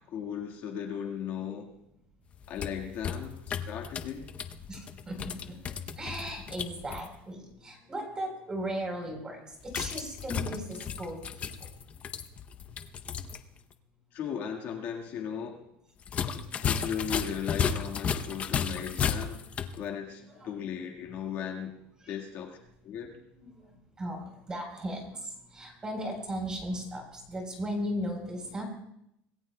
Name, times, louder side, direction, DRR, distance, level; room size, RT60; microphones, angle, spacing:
voice 1, 0.1-1.7 2.5-4.3 14.1-15.6 16.3-19.4 19.8-21.8 22.1-22.6 22.8-23.2, left 8 dB, 40° left, 2 dB, 1.5 m, -37 dB
sound 1, 2.3-7.1 9.7-13.4 13.7-13.8 16.0-19.8, left 7 dB, 25° left, 0.6 m, -34 dB
voice 2, 4.7-11.5 19.8-20.0 20.3-20.7 22.0-22.2 23.4-28.6, equal, 15° right, 3 dB, 3.7 m, -37 dB
26.0 x 19.0 x 2.2 m, 0.77 s
cardioid pair, 175°, 6 cm